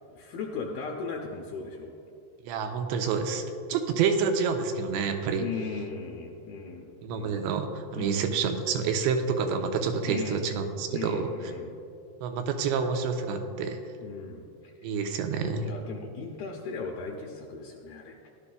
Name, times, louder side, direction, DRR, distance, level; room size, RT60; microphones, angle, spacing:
voice 1, 0.1-1.9 5.3-7.4 7.9-8.3 10.1-10.5 10.9-11.7 14.0-14.9 15.6-18.2, left 4 dB, 75° left, 0 dB, 2.3 m, -37 dB
voice 2, 2.5-3.4 3.7-5.4 7.0-7.7 7.9-11.3 12.2-13.8 14.8-15.7, right 5 dB, 85° right, 5 dB, 2.9 m, -28 dB
16.5 x 11.5 x 2.3 m, 2.5 s
omnidirectional pair, 5.0 m